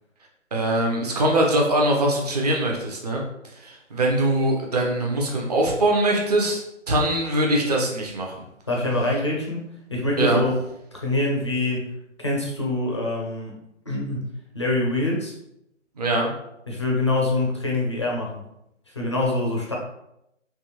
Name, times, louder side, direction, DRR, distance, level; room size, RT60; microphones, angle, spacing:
voice 1, 0.5-3.2 3.6-6.6 6.9-8.4 10.2-10.4 16.0-16.3, right 1 dB, 30° right, -1 dB, 0.7 m, -22 dB
voice 2, 8.7-9.6 9.9-10.5 10.9-11.9 12.2-13.6 13.9-15.3 16.7-18.4 18.9-19.8, left 2 dB, 25° left, -2 dB, 0.4 m, -25 dB
3.4 x 3.1 x 2.9 m, 0.82 s
figure-of-eight pair, 150°, 38 cm